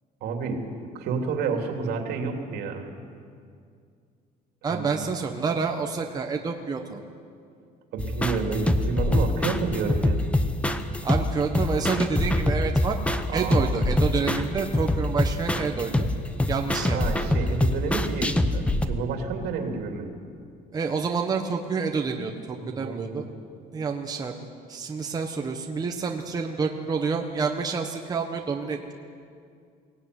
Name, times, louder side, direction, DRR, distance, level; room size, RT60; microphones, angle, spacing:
voice 1, 0.2-2.9 4.7-4.9 7.9-10.2 13.3-13.7 16.7-20.1 22.6-23.3, right 5 dB, 75° right, 3 dB, 3.1 m, -30 dB
voice 2, 4.6-7.0 11.0-13.0 13.3-16.1 16.5-17.4 20.7-23.2 23.7-24.4 24.7-28.9, right 5 dB, 20° right, 3 dB, 1.3 m, -28 dB
sound 1, 8.0-18.9, left 1 dB, 5° left, 0.9 m, -25 dB
23.0 x 17.5 x 9.7 m, 2.3 s
cardioid pair, 165°, 17 cm